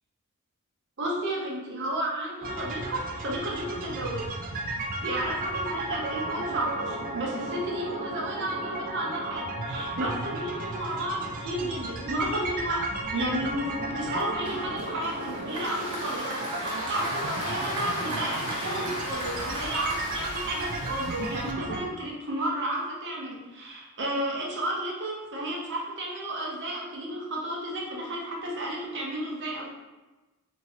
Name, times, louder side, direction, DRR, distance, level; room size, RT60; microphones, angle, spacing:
voice 1, 1.0-4.3 5.0-12.8 13.1-29.7, right 1 dB, 55° right, -3 dB, 0.8 m, -32 dB
sound 1, 2.4-21.9, right 2 dB, 40° right, 0.4 m, -34 dB
Applause, 14.5-21.6, right 1 dB, 85° right, 1.1 m, -36 dB
Tools, 15.6-21.5, left 7 dB, 65° left, 0.3 m, -45 dB
3.6 x 2.9 x 2.8 m, 1.1 s
head